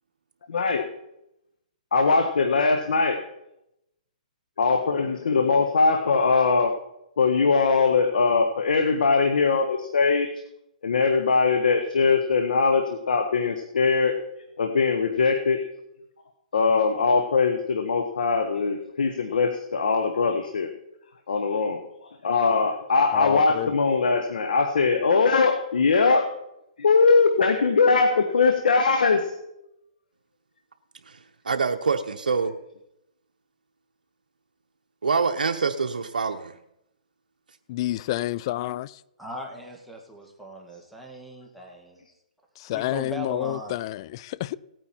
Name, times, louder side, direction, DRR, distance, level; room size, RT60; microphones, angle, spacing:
voice 1, 0.5-0.8 1.9-3.2 4.6-6.8 7.2-10.3 10.8-14.2 14.6-15.6 16.5-20.7 21.3-21.8 22.2-26.3 26.8-29.3, left 4 dB, 80° left, 1.4 m, -21 dB
voice 2, 23.1-23.7 37.7-39.0 42.6-44.6, left 15 dB, 35° left, 0.4 m, -29 dB
voice 3, 31.4-32.5 35.0-36.5, right 5 dB, 90° right, 0.9 m, -25 dB
voice 4, 39.2-42.0 42.7-43.8, right 1 dB, ahead, 1.9 m, -39 dB
17.5 x 9.1 x 4.5 m
hypercardioid pair, 150°, 5 cm